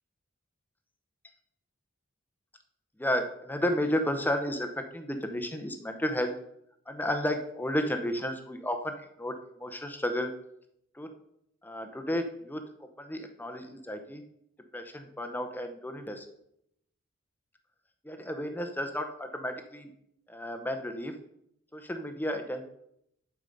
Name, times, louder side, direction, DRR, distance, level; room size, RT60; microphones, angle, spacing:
voice 1, 3.0-6.3 6.9-10.3 10.9-11.1 11.6-12.6 13.0-14.2 14.7-16.3 18.0-19.9 20.3-21.1 21.7-22.6, equal, 10° left, 6 dB, 0.7 m, -32 dB
11.5 x 4.8 x 5.4 m, 0.75 s
head